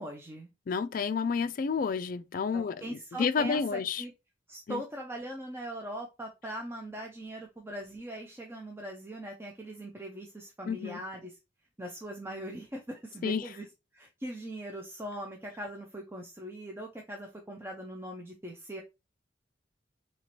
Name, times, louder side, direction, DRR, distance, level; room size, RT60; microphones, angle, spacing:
voice 1, 0.0-0.5 2.5-4.1 4.5-11.4 11.8-13.7 13.9-18.8, right 1 dB, 15° right, 0.5 m, -41 dB
voice 2, 0.7-4.0 4.7-4.8 10.7-11.0 13.2-13.4, left 5 dB, 50° left, 0.3 m, -30 dB
4.3 x 2.9 x 3.0 m
head